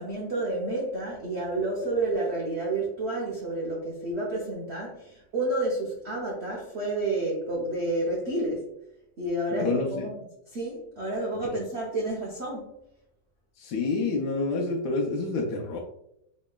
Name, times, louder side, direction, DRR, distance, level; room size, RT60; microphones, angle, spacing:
voice 1, 0.0-8.7 9.2-10.1 10.5-12.7, right 2 dB, 55° right, -4 dB, 0.7 m, -30 dB
voice 2, 9.6-10.1 11.4-11.6 13.6-15.8, left 3 dB, 75° left, -2 dB, 1.2 m, -28 dB
4.0 x 3.0 x 2.2 m, 0.80 s
omnidirectional pair, 1.9 m